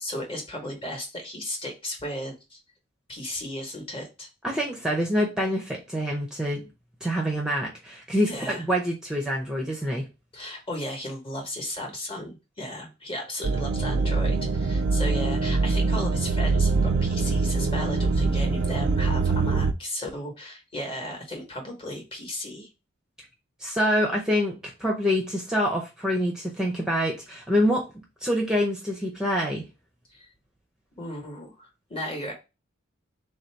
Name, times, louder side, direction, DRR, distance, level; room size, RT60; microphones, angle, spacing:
voice 1, 0.0-2.6 3.1-4.3 8.3-8.6 10.3-22.7 30.1-30.3 31.0-32.3, left 1 dB, 25° left, 2 dB, 1.0 m, -35 dB
voice 2, 4.4-6.6 7.0-10.1 23.6-27.9 28.2-29.6, equal, 5° right, -1 dB, 0.5 m, -26 dB
sound 1, 13.4-19.7, right 3 dB, 65° right, 0.4 m, -24 dB
3.4 x 2.7 x 4.4 m, 0.28 s
head